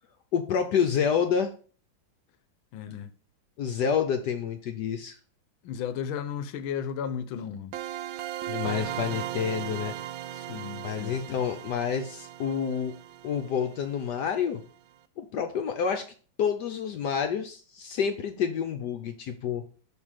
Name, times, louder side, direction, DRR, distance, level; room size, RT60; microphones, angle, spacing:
voice 1, 0.3-1.5 3.6-5.2 8.5-9.9 10.8-12.9 13.2-14.6 15.2-16.1 16.4-19.6, left 7 dB, 65° left, 1.1 m, -28 dB
voice 2, 2.7-3.1 5.6-7.7 10.3-11.4, left 8 dB, 85° left, 1.5 m, -34 dB
sound 1, 7.7-14.4, right 12 dB, 85° right, 1.4 m, -37 dB
5.5 x 5.1 x 6.4 m
omnidirectional pair, 2.2 m